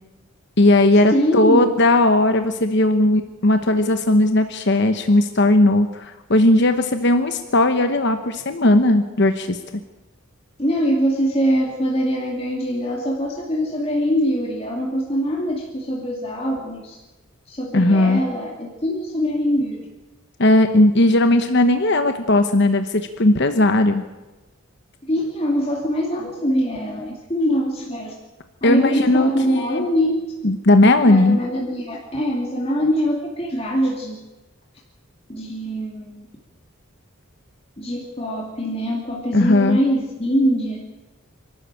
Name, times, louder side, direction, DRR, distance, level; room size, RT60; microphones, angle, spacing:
voice 1, 0.6-9.6 17.7-18.2 20.4-24.0 28.6-29.9 30.4-31.4 39.3-39.8, left 1 dB, 55° left, 8 dB, 1.0 m, -17 dB
voice 2, 1.1-1.7 10.6-17.0 17.5-19.9 25.0-28.1 28.6-30.2 31.1-34.2 35.3-36.3 37.8-40.8, equal, 25° left, -2 dB, 2.6 m, -23 dB
26.5 x 12.5 x 8.9 m, 1.1 s
head